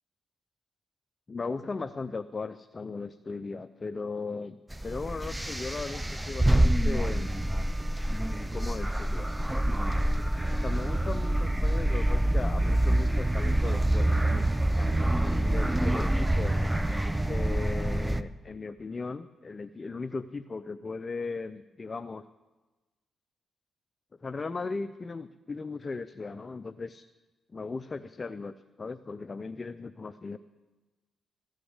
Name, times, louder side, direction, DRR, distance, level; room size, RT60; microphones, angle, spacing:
voice 1, 1.3-7.3 8.5-9.3 10.6-16.6 17.2-22.2 24.2-27.0 27.5-30.4, left 4 dB, 35° left, 12 dB, 0.4 m, -37 dB
sound 1, 4.7-18.2, right 1 dB, 10° right, 0.6 m, -26 dB
14.5 x 6.3 x 8.0 m, 1.2 s
cardioid pair, 70°, 0 cm